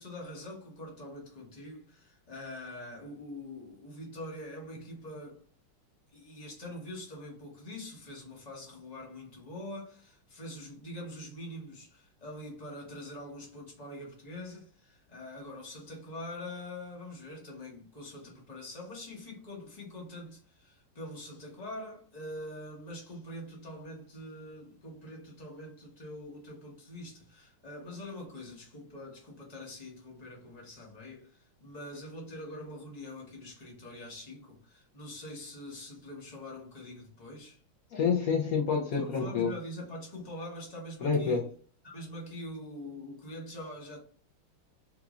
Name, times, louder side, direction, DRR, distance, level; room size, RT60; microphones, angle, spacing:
voice 1, 0.0-5.4 6.1-37.6 38.9-41.5 41.8-44.0, left 1 dB, 25° left, 0.9 m, -44 dB
voice 2, 37.9-39.5 41.0-41.5, left 5 dB, 80° left, 0.8 m, -28 dB
3.6 x 3.0 x 2.4 m
omnidirectional pair, 2.4 m